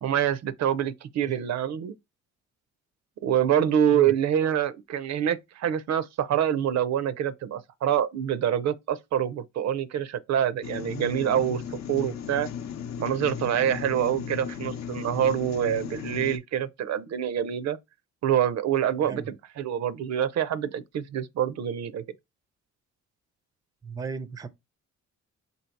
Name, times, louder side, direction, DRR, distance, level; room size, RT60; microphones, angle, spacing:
voice 1, 0.0-1.9 3.2-12.5 13.0-17.8 18.2-22.0, right 9 dB, 60° right, 0.5 m, -26 dB
sound 1, 10.6-16.4, left 8 dB, 65° left, 0.7 m, -36 dB
voice 2, 23.8-24.5, right 4 dB, 10° right, 0.4 m, -35 dB
4.0 x 2.7 x 4.4 m
cardioid pair, 90°, 30 cm